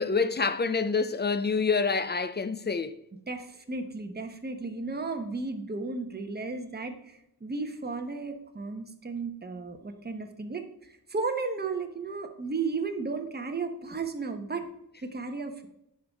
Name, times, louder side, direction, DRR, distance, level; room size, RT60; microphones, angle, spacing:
voice 1, 0.0-2.9, left 4 dB, 25° left, 0.5 m, -27 dB
voice 2, 3.3-14.6 15.0-15.7, right 4 dB, 25° right, 1.0 m, -34 dB
10.0 x 5.4 x 3.5 m
wide cardioid pair, 90°, 38 cm